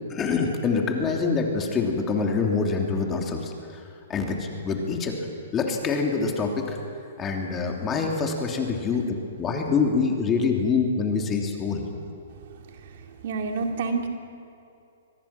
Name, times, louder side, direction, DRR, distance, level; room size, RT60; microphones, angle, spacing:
voice 1, 0.1-3.8 4.1-5.2 5.5-6.8 7.2-11.8, left 4 dB, 20° left, 1 dB, 3.0 m, -25 dB
voice 2, 13.2-14.1, right 4 dB, 60° right, 3 dB, 2.4 m, -27 dB
24.0 x 20.0 x 6.0 m, 2.6 s
hypercardioid pair, 125°, 0 cm